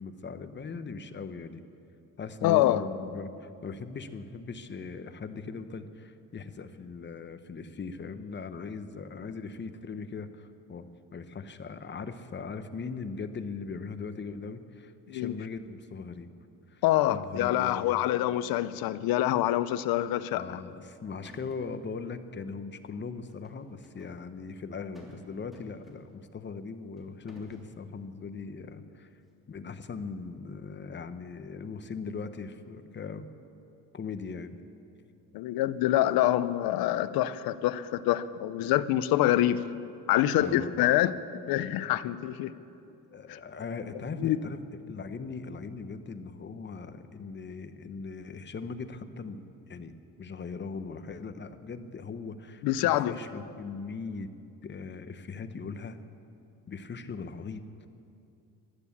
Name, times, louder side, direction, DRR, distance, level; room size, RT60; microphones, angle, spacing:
voice 1, 0.0-1.6 2.2-10.9 11.1-16.3 16.7-16.8 17.1-17.9 20.3-29.1 29.5-33.3 33.9-34.6 40.4-40.7 43.1-49.4 49.7-49.9 50.2-54.3 54.6-56.0 56.7-57.6, left 4 dB, 30° left, 10 dB, 0.9 m, -39 dB
voice 2, 2.4-2.8 15.1-15.3 16.8-20.6 35.3-39.6 40.1-41.1 41.5-42.5 43.3-43.4 44.2-44.4 52.6-53.1, left 14 dB, 90° left, 15 dB, 0.7 m, -26 dB
sound 1, 20.9-21.0 21.2-21.8 23.3-24.2 24.9-25.2 25.5-26.3 27.0-27.7, right 1 dB, ahead, 3.1 m, -54 dB
14.5 x 12.0 x 8.4 m, 2.7 s
cardioid pair, 115°, 35 cm